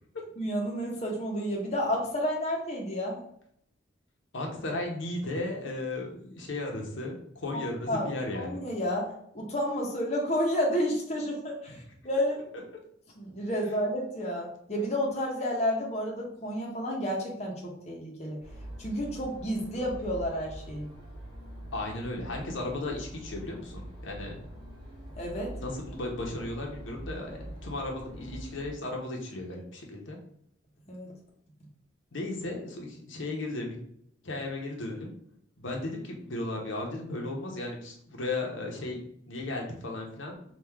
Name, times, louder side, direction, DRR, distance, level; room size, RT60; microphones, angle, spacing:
voice 1, 0.4-3.2 7.5-7.6 7.9-8.1 8.3-12.4 13.2-18.4 18.8-20.9 25.2-25.5 30.9-31.1, equal, 35° left, -2 dB, 0.8 m, -31 dB
voice 2, 4.3-8.6 21.7-24.4 25.5-30.2 32.1-33.7 34.2-35.1 35.6-40.4, left 2 dB, 75° left, 0 dB, 0.9 m, -35 dB
sound 1, 18.4-28.7, right 1 dB, 20° right, 1.4 m, -44 dB
3.6 x 2.4 x 4.5 m, 0.70 s
head